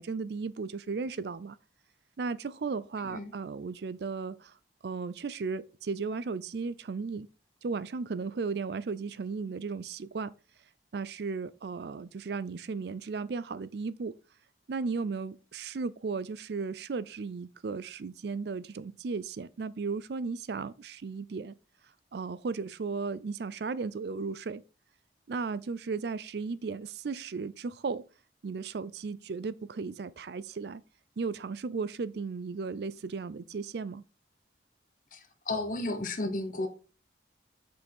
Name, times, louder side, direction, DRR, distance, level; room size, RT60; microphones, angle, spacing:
voice 1, 0.0-1.6 2.2-4.5 4.8-7.3 7.6-10.3 10.9-14.2 14.7-21.6 22.1-24.6 25.3-28.1 28.4-30.8 31.2-34.0, right 4 dB, 60° right, 0.4 m, -35 dB
voice 2, 35.5-36.7, left 2 dB, 45° left, 0.9 m, -32 dB
6.2 x 5.3 x 4.5 m
head